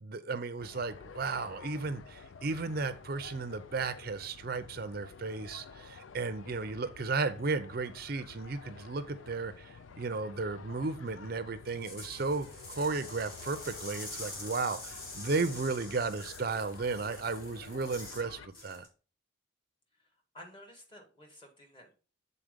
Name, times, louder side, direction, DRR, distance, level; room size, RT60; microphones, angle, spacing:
voice 1, 0.0-18.9, right 3 dB, 45° right, 11 dB, 0.5 m, -34 dB
sound 1, 0.6-18.5, left 5 dB, 75° left, 0.5 m, -51 dB
sound 2, 11.6-18.3 18.5-18.9, left 2 dB, 45° left, 2.4 m, -46 dB
voice 2, 20.3-21.9, left 1 dB, 25° left, 2 dB, 1.8 m, -52 dB
7.4 x 4.2 x 5.1 m, 0.36 s
head